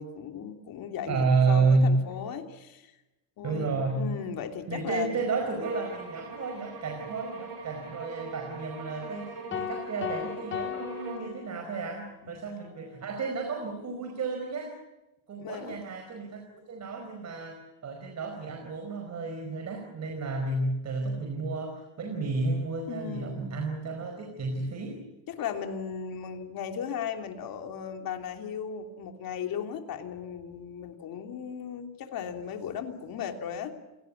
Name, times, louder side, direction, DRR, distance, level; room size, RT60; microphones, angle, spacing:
voice 1, 0.0-2.9 3.4-5.2 12.2-12.5 15.4-15.8 22.9-23.6 25.3-33.7, left 7 dB, 65° left, 4 dB, 3.2 m, -36 dB
voice 2, 1.1-1.9 3.4-4.0 4.7-14.7 15.3-25.0, right 4 dB, 45° right, 4 dB, 4.8 m, -31 dB
sound 1, 5.6-11.4, right 4 dB, 90° right, 6.9 m, -42 dB
sound 2, 9.5-12.0, left 10 dB, 30° left, 1.0 m, -36 dB
29.0 x 18.5 x 8.6 m, 1.0 s
cardioid pair, 150°, 38 cm